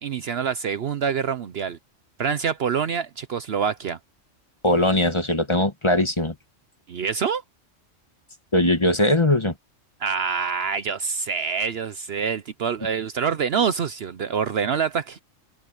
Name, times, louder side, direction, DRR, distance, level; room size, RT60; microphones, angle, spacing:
voice 1, 0.0-1.8 2.2-4.0 6.9-7.4 10.0-15.2, right 6 dB, 60° right, 0.9 m, -26 dB
voice 2, 4.6-6.3 8.5-9.5, left 1 dB, 25° left, 1.5 m, -20 dB
omnidirectional pair, 1.3 m